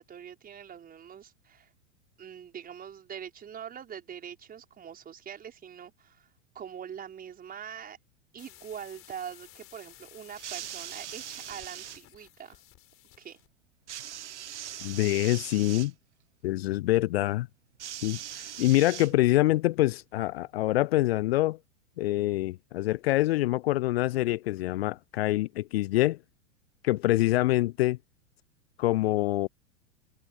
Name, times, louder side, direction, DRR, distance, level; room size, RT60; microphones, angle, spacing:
voice 1, 0.0-1.7 2.2-6.3 6.5-8.0 8.3-12.6 13.2-13.4, right 8 dB, 25° right, 5.7 m, -43 dB
sound 1, 8.4-13.5, left 15 dB, 35° left, 4.0 m, -54 dB
sound 2, 10.3-12.0 13.9-15.9 17.8-19.5 20.5-20.6, right 11 dB, 70° right, 1.2 m, -41 dB
voice 2, 14.8-15.9 16.4-17.5 18.0-21.6 22.0-26.2 26.8-28.0 28.8-29.5, left 17 dB, 55° left, 0.6 m, -25 dB
figure-of-eight pair, 95°, 37 cm